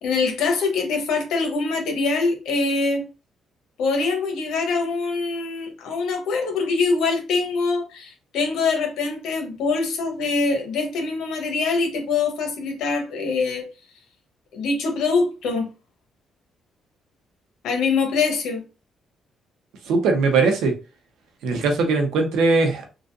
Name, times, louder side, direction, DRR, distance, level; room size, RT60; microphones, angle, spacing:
voice 1, 0.0-3.0 3.8-13.6 14.5-15.7 17.6-18.6, left 4 dB, 80° left, 1.1 m, -24 dB
voice 2, 19.8-20.7 21.4-22.9, right 3 dB, 85° right, 0.9 m, -20 dB
3.9 x 2.5 x 2.6 m
cardioid pair, 90°, 0 cm